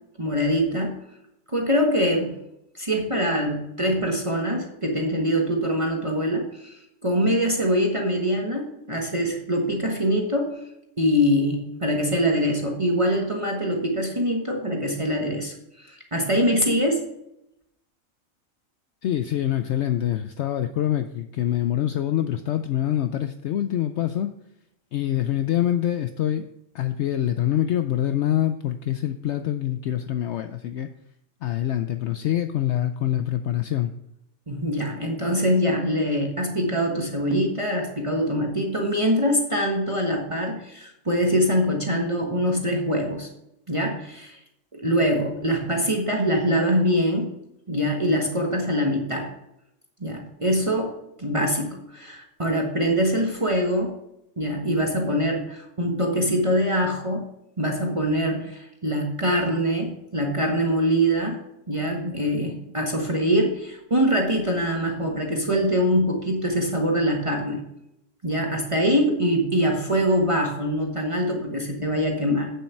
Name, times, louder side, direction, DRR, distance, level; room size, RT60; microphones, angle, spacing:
voice 1, 0.2-1.0 1.5-2.3 2.7-10.6 11.0-17.0 34.5-43.3 43.7-44.4 44.7-47.3 47.7-49.3 50.0-50.9 51.2-53.9 54.4-57.3 57.6-61.4 61.7-67.6 68.2-72.5, equal, 25° right, 0 dB, 1.3 m, -24 dB
voice 2, 19.0-24.3 24.9-26.5 26.7-30.9 31.4-33.9, left 11 dB, 65° left, 9 dB, 0.8 m, -25 dB
8.7 x 7.3 x 4.5 m, 0.83 s
omnidirectional pair, 1.3 m